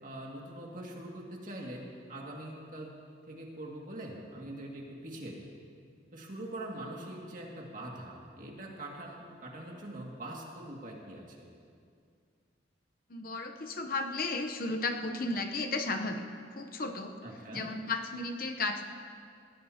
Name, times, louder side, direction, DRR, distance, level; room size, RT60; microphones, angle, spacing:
voice 1, 0.0-2.9 3.3-5.5 6.1-11.5 17.2-17.7, right 1 dB, 45° right, -1 dB, 2.2 m, -43 dB
voice 2, 13.1-16.2 16.5-17.1 17.5-18.8, left 3 dB, 50° left, 5 dB, 0.8 m, -34 dB
21.0 x 16.0 x 2.9 m, 2.3 s
head